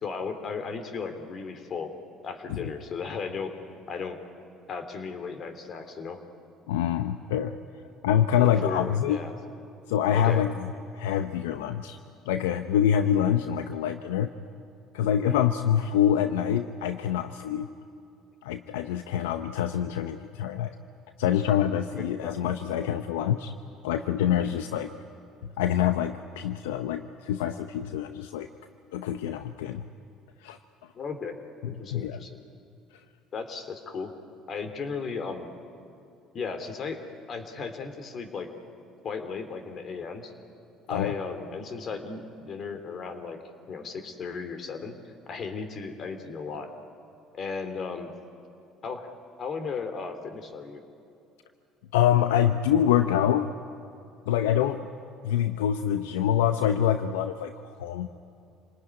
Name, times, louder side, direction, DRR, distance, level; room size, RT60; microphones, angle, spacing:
voice 1, 0.0-1.9 2.2-3.5 3.9-4.2 4.7-6.2 8.4-9.4 10.1-10.4 15.2-15.5 21.9-22.4 24.4-24.6 30.9-31.3 31.7-32.4 33.3-34.1 34.5-35.5 36.3-37.0 37.3-38.5 39.0-40.3 40.9-43.4 43.7-44.9 45.3-46.7 47.3-48.1 48.8-50.8, left 5 dB, 50° left, 8 dB, 3.2 m, -35 dB
voice 2, 6.7-7.5 8.0-9.2 9.9-10.7 10.9-12.0 12.3-14.3 14.9-17.7 18.4-20.7 21.2-23.5 23.8-24.9 25.6-28.5 28.9-29.8 30.4-30.6 31.6-32.2 40.9-41.1 51.9-53.5 54.3-54.8 55.2-57.5 57.8-58.1, left 10 dB, 85° left, 9 dB, 0.7 m, -25 dB
27.5 x 19.5 x 9.8 m, 2.6 s
hypercardioid pair, 65°, 0 cm